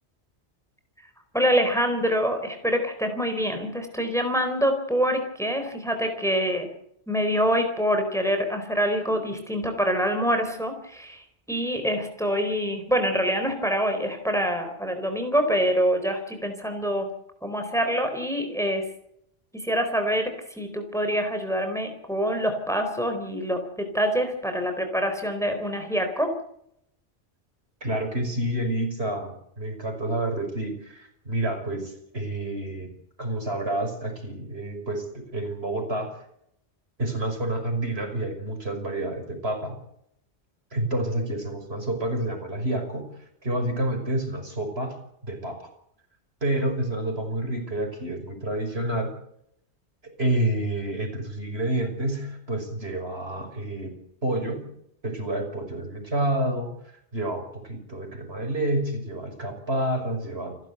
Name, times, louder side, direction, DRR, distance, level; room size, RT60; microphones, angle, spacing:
voice 1, 1.3-6.7 7.1-17.1 17.4-18.9 19.6-26.3, equal, 5° left, 6 dB, 4.2 m, -25 dB
voice 2, 27.8-32.9 33.2-36.2 37.0-39.8 40.7-43.1 43.4-45.0 45.3-45.7 46.4-49.1 50.2-54.0 54.2-54.7 55.0-56.7 57.1-60.7, right 1 dB, 65° right, 5 dB, 5.9 m, -29 dB
29.0 x 12.0 x 8.0 m, 0.73 s
omnidirectional pair, 1.1 m